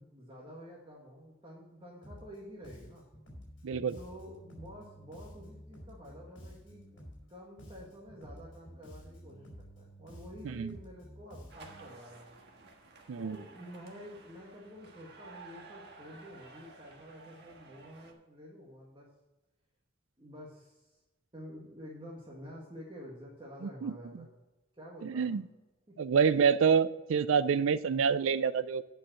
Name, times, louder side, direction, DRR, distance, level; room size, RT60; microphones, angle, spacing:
voice 1, 0.0-3.0 3.9-7.0 7.3-9.5 9.8-12.4 13.2-19.1 20.2-21.0 21.3-24.3 24.7-25.3 25.9-26.0, equal, 25° right, -4 dB, 1.7 m, -49 dB
Bass guitar, 2.0-2.4 2.6-7.3 7.6-11.9, equal, 75° left, 4.3 m, -51 dB
voice 2, 3.6-4.0 10.4-10.7 13.1-13.4 23.8-23.9 25.0-25.4 26.0-28.8, right 6 dB, 90° right, 14 dB, 0.4 m, -27 dB
sound 1, 11.5-18.1, right 3 dB, 55° right, 1.5 m, -54 dB
9.0 x 5.6 x 7.7 m, 1.1 s
head